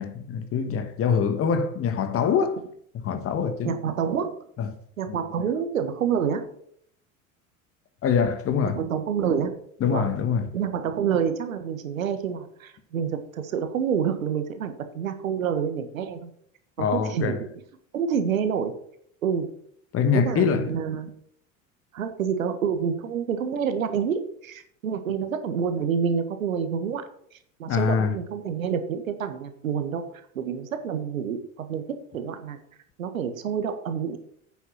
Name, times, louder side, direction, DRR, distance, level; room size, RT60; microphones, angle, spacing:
voice 1, 0.0-2.6 2.9-3.8 4.6-4.8 5.1-5.5 8.0-8.8 9.8-10.6 16.8-17.4 19.9-20.7 27.7-28.2, left 6 dB, 35° left, 1.4 m, -24 dB
voice 2, 3.6-4.3 5.0-6.5 8.7-9.6 9.9-10.0 10.5-16.3 16.8-17.5 17.9-18.7 19.2-19.5 20.1-21.1 21.9-27.0 27.6-30.0 30.3-31.8 32.1-32.6 33.0-34.2, right 7 dB, 70° right, 1.4 m, -28 dB
9.5 x 7.2 x 5.7 m
figure-of-eight pair, 70°, 41 cm